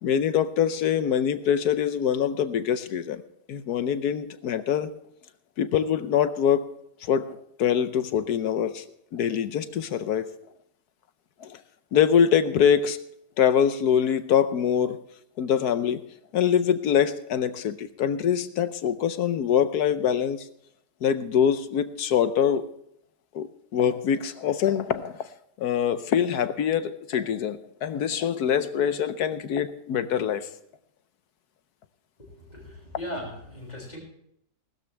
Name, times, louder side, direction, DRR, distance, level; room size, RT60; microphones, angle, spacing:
voice 1, 0.0-3.2 3.5-4.9 5.6-6.7 7.0-8.8 9.1-10.3 11.4-11.6 11.9-13.0 13.4-15.0 15.4-16.0 16.3-20.5 21.0-22.7 23.3-25.3 25.6-30.5, left 8 dB, 70° left, 12 dB, 1.3 m, -24 dB
voice 2, 32.2-34.0, left 1 dB, 25° left, -3 dB, 6.8 m, -38 dB
19.0 x 13.0 x 3.3 m, 0.75 s
omnidirectional pair, 1.8 m